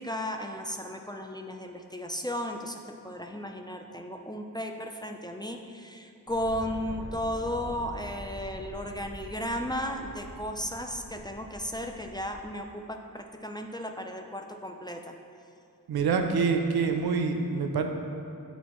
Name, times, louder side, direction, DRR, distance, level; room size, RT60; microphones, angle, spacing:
voice 1, 0.0-15.1, equal, 10° left, 3 dB, 0.4 m, -35 dB
sound 1, 6.3-12.5, equal, 25° left, 1.4 m, -44 dB
voice 2, 15.9-17.8, right 5 dB, 80° right, 4 dB, 0.6 m, -26 dB
8.1 x 4.1 x 3.0 m, 2.6 s
cardioid pair, 45°, 38 cm